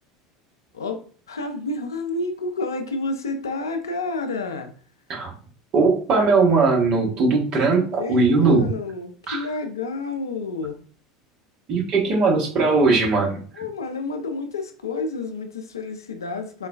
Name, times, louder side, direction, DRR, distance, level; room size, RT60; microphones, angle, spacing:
voice 1, 0.7-4.7 7.8-10.8 13.5-16.7, left 3 dB, 80° left, 6 dB, 0.4 m, -30 dB
voice 2, 5.7-8.7 9.3-9.4 11.7-13.4, right 4 dB, 40° right, -2 dB, 1.1 m, -19 dB
3.8 x 2.3 x 2.2 m, 0.43 s
figure-of-eight pair, 75°, 2 cm